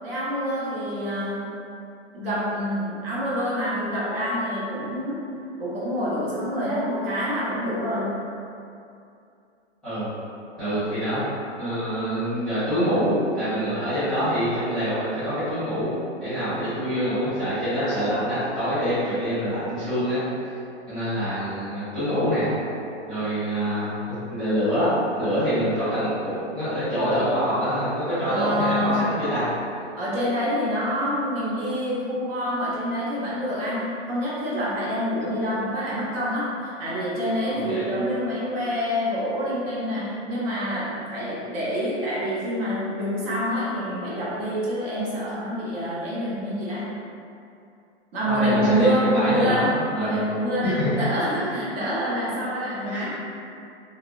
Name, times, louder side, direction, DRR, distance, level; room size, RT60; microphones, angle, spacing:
voice 1, 0.0-1.6 2.1-5.2 5.6-8.2 28.3-29.0 30.0-46.9 48.1-53.2, equal, 50° right, -8 dB, 0.9 m, -26 dB
voice 2, 10.6-11.2 11.6-15.9 16.2-20.2 20.9-22.5 23.1-23.9 24.3-24.9 25.2-29.5 37.5-37.9 48.2-50.2 50.6-50.9 51.5-51.6 52.3-52.4 52.9-53.1, equal, ahead, -16 dB, 0.8 m, -25 dB
3.0 x 2.0 x 2.4 m, 2.6 s
hypercardioid pair, 145°, 36 cm